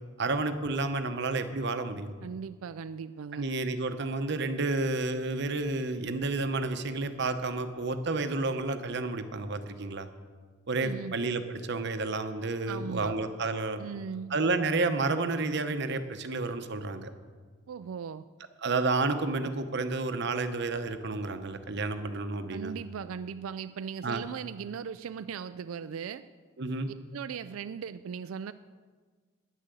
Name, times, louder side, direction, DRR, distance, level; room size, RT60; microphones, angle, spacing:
voice 1, 0.2-2.1 3.3-10.1 10.7-13.8 14.3-17.1 18.6-22.7 24.0-24.2 26.6-26.9, right 3 dB, 55° right, 8 dB, 0.9 m, -30 dB
voice 2, 2.2-3.5 10.8-11.2 12.7-13.2 13.8-14.4 17.7-18.3 22.5-26.3 27.1-28.5, right 6 dB, 80° right, 12 dB, 0.4 m, -38 dB
10.5 x 10.0 x 7.7 m, 1.5 s
head